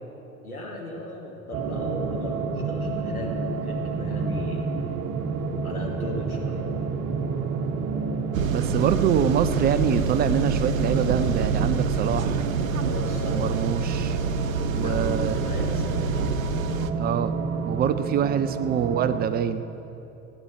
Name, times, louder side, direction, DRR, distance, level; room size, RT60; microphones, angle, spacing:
voice 1, 0.4-4.7 5.6-6.7 12.8-13.5 14.5-16.1, left 1 dB, 85° left, -2 dB, 2.4 m, -36 dB
sound 1, 1.5-19.3, right 4 dB, 40° right, 1.4 m, -30 dB
sound 2, 8.3-16.9, right 4 dB, 70° right, 0.8 m, -27 dB
voice 2, 8.5-12.4 13.2-14.2 14.7-15.4 17.0-17.4 17.6-19.7, right 9 dB, 25° right, 12 dB, 0.4 m, -25 dB
17.0 x 8.5 x 8.2 m, 2.9 s
figure-of-eight pair, 70°, 42 cm